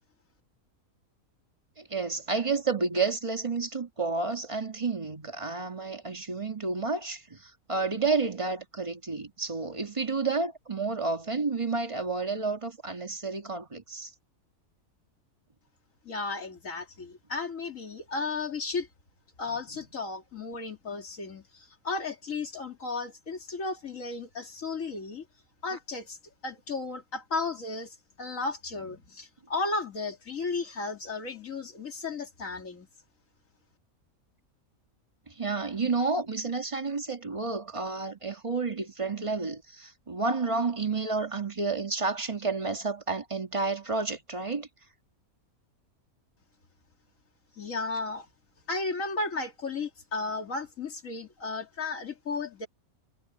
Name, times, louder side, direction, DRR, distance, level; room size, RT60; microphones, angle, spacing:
voice 1, 1.8-14.1 35.3-44.7, right 4 dB, 20° right, 1.7 m, -30 dB
voice 2, 16.0-18.9 19.4-25.2 25.6-26.2 26.4-32.9 47.6-48.3 48.7-52.7, left 3 dB, 60° left, 2.8 m, -34 dB
omnidirectional pair, 1.5 m